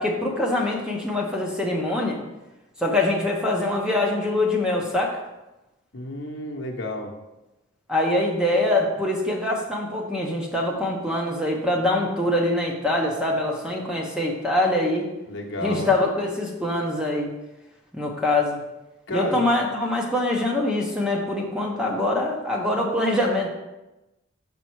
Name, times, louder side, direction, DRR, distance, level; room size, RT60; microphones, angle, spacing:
voice 1, 0.0-2.2 2.8-5.1 7.9-15.1 15.6-17.3 17.9-18.6 19.1-23.5, left 1 dB, 5° right, -1 dB, 0.8 m, -24 dB
voice 2, 5.9-7.1 15.3-15.9 19.1-19.4, left 1 dB, 60° left, 1 dB, 0.9 m, -31 dB
5.8 x 5.3 x 4.6 m, 1.0 s
head